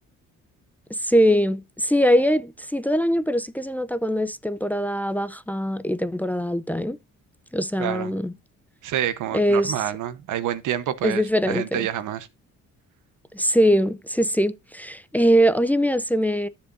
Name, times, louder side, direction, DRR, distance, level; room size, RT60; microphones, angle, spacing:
voice 1, 1.0-7.0 7.5-8.3 9.3-9.7 11.0-11.9 13.3-16.5, equal, 5° left, 0.5 m, -22 dB
voice 2, 7.8-8.1 8.8-12.3, right 11 dB, 80° right, 1.1 m, -28 dB
13.0 x 7.1 x 2.6 m
cardioid pair, 90°, 30 cm